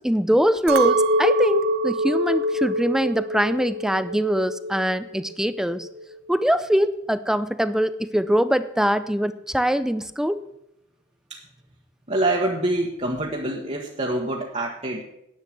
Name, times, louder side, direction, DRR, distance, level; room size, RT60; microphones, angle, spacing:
voice 1, 0.0-5.9 6.3-10.4, equal, 5° right, 14 dB, 0.5 m, -23 dB
Chink clink, 0.7-5.1 5.4-6.0, right 1 dB, 60° right, 1.0 m, -24 dB
voice 2, 12.1-15.0, right 1 dB, 35° right, -2 dB, 1.4 m, -25 dB
10.5 x 8.6 x 7.6 m, 0.83 s
head